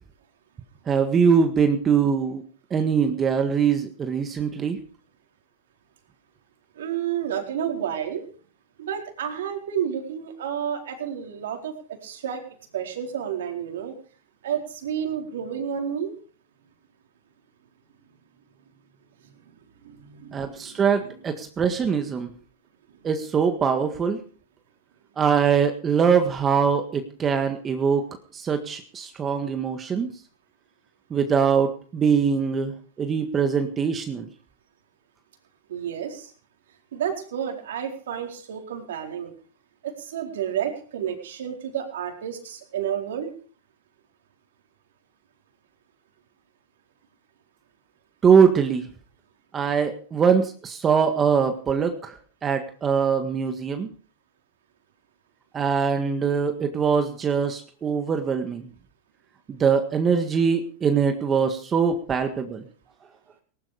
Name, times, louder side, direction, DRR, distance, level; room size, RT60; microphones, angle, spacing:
voice 1, 0.9-2.4 2.7-4.8 20.3-22.3 23.0-24.2 25.2-28.0 28.3-30.1 31.1-34.3 48.2-48.9 49.5-53.9 55.5-58.7 59.5-62.6, right 6 dB, 25° right, 6 dB, 1.7 m, -22 dB
voice 2, 6.7-8.2 8.8-11.7 12.0-12.4 12.7-13.9 14.4-16.1 19.2-19.3 19.8-21.1 35.7-36.3 36.9-39.3 39.8-43.3, right 9 dB, 80° right, 3 dB, 4.3 m, -30 dB
18.0 x 12.5 x 5.1 m, 0.43 s
hypercardioid pair, 120°, 0 cm